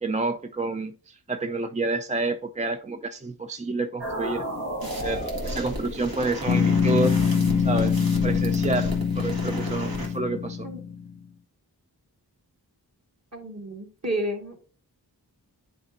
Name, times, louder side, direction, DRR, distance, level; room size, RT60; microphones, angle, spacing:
voice 1, 0.0-4.5 4.9-7.2 7.6-8.0 8.2-10.7, right 2 dB, 20° right, 0.4 m, -29 dB
sound 1, 4.0-10.2, equal, 85° right, 1.8 m, -37 dB
sound 2, 4.8-10.1, right 1 dB, 60° right, 1.7 m, -36 dB
sound 3, 6.5-11.1, left 6 dB, 40° left, 0.6 m, -24 dB
voice 2, 13.3-14.6, right 1 dB, 40° right, 2.0 m, -31 dB
10.0 x 4.2 x 2.6 m
wide cardioid pair, 50°, 40 cm